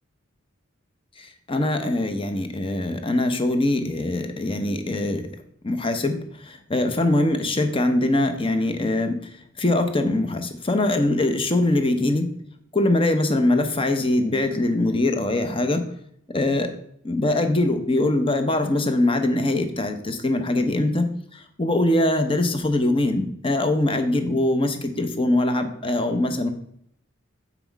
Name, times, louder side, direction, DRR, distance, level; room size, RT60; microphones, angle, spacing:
voice 1, 1.2-5.3 5.6-9.2 9.6-12.3 12.7-15.9 16.3-16.7 17.0-26.5, left 1 dB, 25° left, 8 dB, 0.7 m, -22 dB
7.2 x 6.0 x 4.6 m, 0.71 s
head